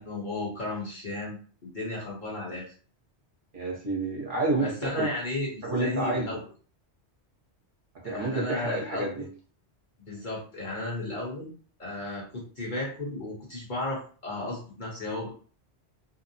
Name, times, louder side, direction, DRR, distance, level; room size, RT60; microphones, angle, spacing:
voice 1, 0.0-1.4 1.7-2.6 4.6-6.4 8.0-9.3 10.0-11.5 11.8-15.3, left 2 dB, 45° left, -4 dB, 1.1 m, -34 dB
voice 2, 3.5-5.1 5.6-6.4 8.0-9.3, right 2 dB, 50° right, -3 dB, 0.9 m, -29 dB
2.8 x 2.0 x 2.7 m, 0.40 s
omnidirectional pair, 1.2 m